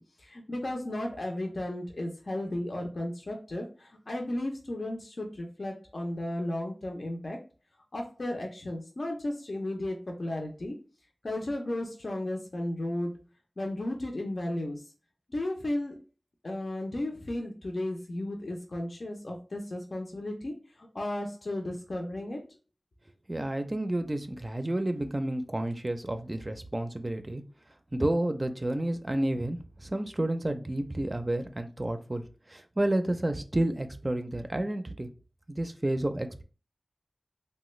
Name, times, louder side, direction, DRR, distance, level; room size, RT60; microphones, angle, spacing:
voice 1, 0.0-7.4 7.9-10.8 11.2-13.1 13.6-14.9 15.3-16.0 16.4-22.4, left 1 dB, 70° left, 1 dB, 0.5 m, -34 dB
voice 2, 23.3-27.4 27.9-32.2 32.5-35.1 35.5-36.4, right 1 dB, 35° right, 7 dB, 0.4 m, -30 dB
3.1 x 2.2 x 3.1 m, 0.36 s
wide cardioid pair, 45°, 0 cm